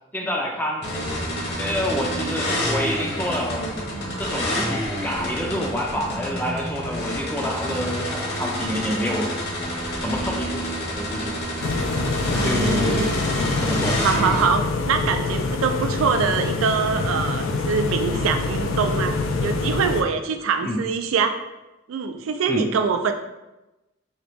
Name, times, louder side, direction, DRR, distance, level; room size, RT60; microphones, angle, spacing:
voice 1, 0.1-0.8 1.6-3.7 4.2-9.3 10.0-11.4 12.3-13.1 13.4-14.2 20.6-20.8 22.5-22.7, equal, 10° left, -1 dB, 0.3 m, -28 dB
sound 1, 0.8-14.4, equal, 55° left, 0.9 m, -28 dB
sound 2, 11.6-20.0, left 3 dB, 85° left, 0.4 m, -25 dB
voice 2, 12.4-13.1 14.0-19.1 19.4-21.3 21.9-23.1, right 6 dB, 90° right, 7 dB, 0.3 m, -24 dB
3.0 x 2.8 x 3.4 m, 1.0 s
head